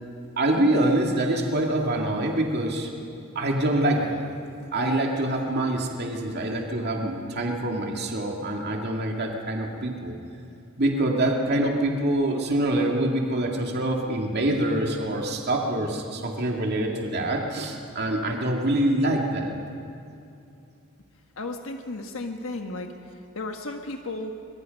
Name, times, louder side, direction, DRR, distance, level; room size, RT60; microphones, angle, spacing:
voice 1, 0.4-2.9 3.4-4.2 4.7-10.1 10.8-19.5, right 1 dB, 50° right, 1 dB, 2.2 m, -25 dB
voice 2, 21.4-22.9 23.3-24.3, left 2 dB, 75° left, 4 dB, 1.3 m, -34 dB
23.5 x 22.0 x 5.3 m, 2.6 s
head